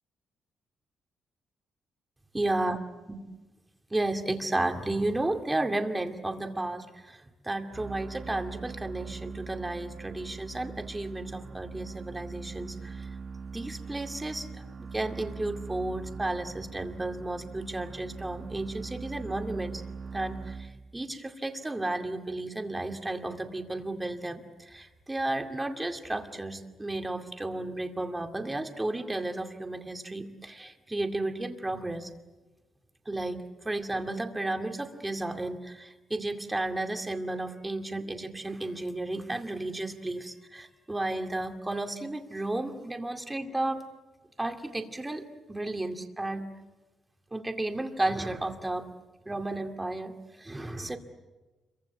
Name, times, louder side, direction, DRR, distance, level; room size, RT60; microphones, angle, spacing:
voice 1, 2.3-2.8 3.1-3.2 3.9-13.1 13.5-19.8 20.1-32.1 33.1-43.8 44.4-46.4 47.3-48.9 49.3-51.0, right 2 dB, 10° right, 5 dB, 2.3 m, -33 dB
sound 1, 7.7-21.1, right 4 dB, 35° right, 1.0 m, -42 dB
29.5 x 23.5 x 8.3 m, 1.2 s
cardioid pair, 155°, 0 cm